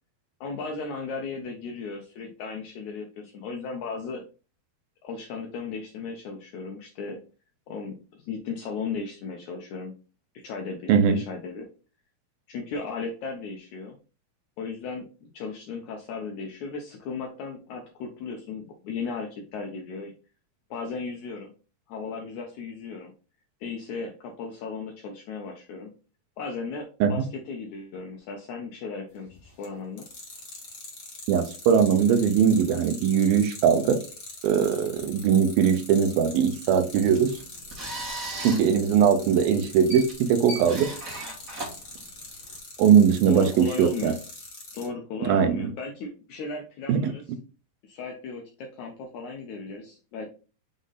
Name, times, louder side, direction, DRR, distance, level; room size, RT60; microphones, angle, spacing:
voice 1, 0.4-4.2 5.0-7.2 7.7-9.9 10.3-11.7 12.5-14.0 14.6-20.1 20.7-21.5 21.9-23.1 23.6-25.9 26.4-30.1 43.3-44.2 44.7-47.2 47.8-50.3, left 4 dB, 75° left, 2 dB, 1.7 m, -36 dB
sound 1, 29.2-29.7 30.0-44.9, left 3 dB, 45° left, 0.8 m, -43 dB
voice 2, 31.3-34.0 34.4-37.3 38.4-40.9 42.8-44.1 45.2-45.7 46.9-47.1, right 7 dB, 80° right, 8 dB, 2.5 m, -21 dB
sound 2, 36.9-42.6, right 1 dB, 30° right, 1.6 m, -38 dB
6.2 x 3.8 x 3.9 m, 0.35 s
omnidirectional pair, 4.3 m